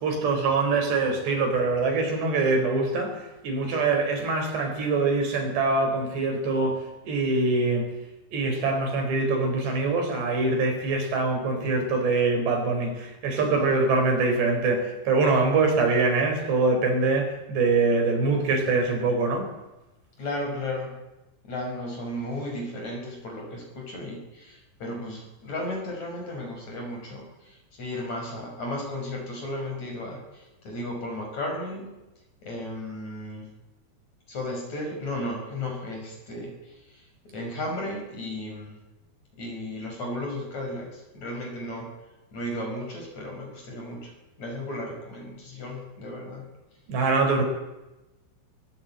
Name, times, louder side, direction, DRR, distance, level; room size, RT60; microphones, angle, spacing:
voice 1, 0.0-7.9 8.3-19.5 46.9-47.4, right 3 dB, 65° right, 3 dB, 6.4 m, -24 dB
voice 2, 20.2-21.0 21.4-32.0 32.4-33.5 34.3-38.8 39.4-41.9 42.3-44.1 44.4-46.5, left 1 dB, 40° left, 1 dB, 6.7 m, -34 dB
21.5 x 19.5 x 9.0 m, 1.0 s
omnidirectional pair, 5.3 m